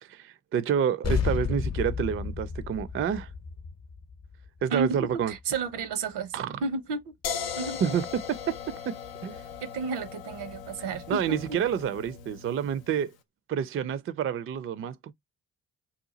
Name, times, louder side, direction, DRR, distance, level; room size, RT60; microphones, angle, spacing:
voice 1, 0.0-3.3 4.6-5.3 6.3-6.6 7.8-9.4 11.1-13.1 13.5-15.1, right 8 dB, 35° right, 0.4 m, -29 dB
sound 1, 1.0-5.8, left 6 dB, 40° left, 0.7 m, -32 dB
voice 2, 4.7-6.3 6.6-7.1 7.6-7.9 9.6-11.4, right 4 dB, 75° right, 0.7 m, -32 dB
sound 2, 7.2-13.1, left 7 dB, 90° left, 0.6 m, -39 dB
2.8 x 2.3 x 3.8 m
supercardioid pair, 45°, 42 cm